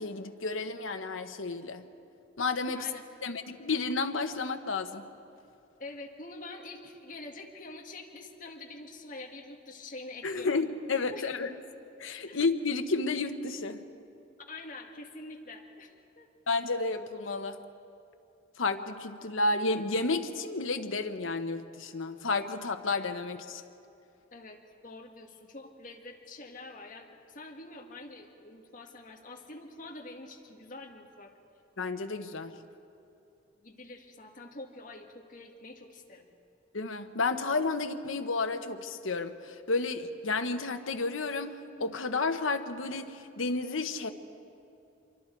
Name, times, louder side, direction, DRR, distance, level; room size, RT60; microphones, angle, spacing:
voice 1, 0.0-1.9 2.4-2.9 3.2-5.1 10.2-11.5 12.0-13.8 16.5-17.6 18.6-23.6 31.8-32.6 36.7-44.1, left 3 dB, 85° left, 7 dB, 1.2 m, -31 dB
voice 2, 5.8-10.6 11.1-11.4 12.3-12.4 14.5-16.3 24.3-31.3 33.6-36.3, left 2 dB, 40° left, 1 dB, 2.0 m, -46 dB
26.5 x 23.5 x 4.7 m, 2.6 s
head